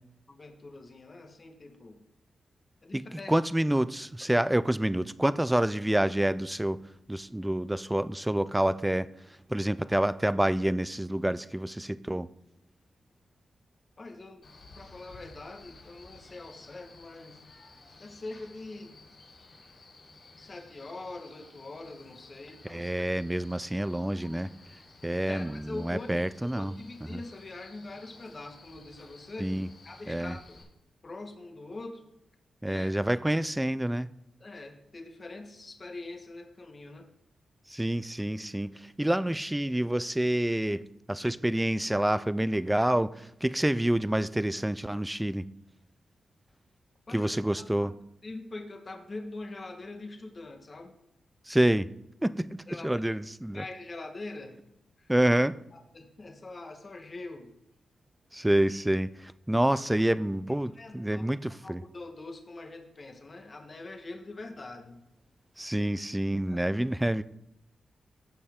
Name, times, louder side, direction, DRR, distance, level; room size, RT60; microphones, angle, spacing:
voice 1, 0.3-2.0 2.8-3.3 14.0-14.5 14.8-17.4 18.0-18.9 20.4-23.0 25.3-26.1 26.4-29.6 29.8-30.6 31.0-32.1 32.6-32.9 34.4-37.1 47.1-47.3 47.8-47.9 48.2-50.9 52.7-53.1 53.5-54.6 55.0-55.3 55.7-57.5 60.7-61.3 61.6-65.0 66.3-66.6, left 2 dB, 35° left, 1.2 m, -43 dB
voice 2, 2.9-6.8 7.1-9.1 9.5-12.3 22.7-24.5 25.0-26.7 27.1-27.2 29.4-29.7 30.1-30.4 32.6-34.1 37.7-45.5 47.1-47.9 51.5-51.9 52.2-53.6 55.1-55.5 58.3-61.8 65.6-67.2, right 1 dB, 5° right, 0.3 m, -28 dB
Male speech man speaking, 14.4-30.6, left 3 dB, 50° left, 3.3 m, -54 dB
14.5 x 5.6 x 3.6 m
wide cardioid pair, 115°, 0 cm